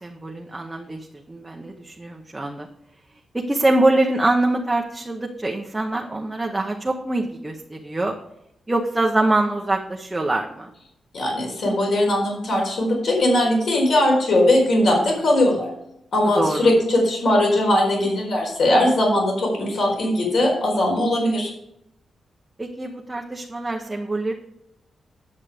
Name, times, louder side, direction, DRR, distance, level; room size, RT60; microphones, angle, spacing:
voice 1, 0.0-2.7 3.3-8.1 8.7-10.7 16.4-16.7 22.6-24.3, right 2 dB, 10° right, 0 dB, 0.8 m, -24 dB
voice 2, 11.1-15.7 16.1-21.5, left 1 dB, 65° left, -2 dB, 4.3 m, -19 dB
10.0 x 7.3 x 5.0 m, 0.79 s
wide cardioid pair, 165°, 0 cm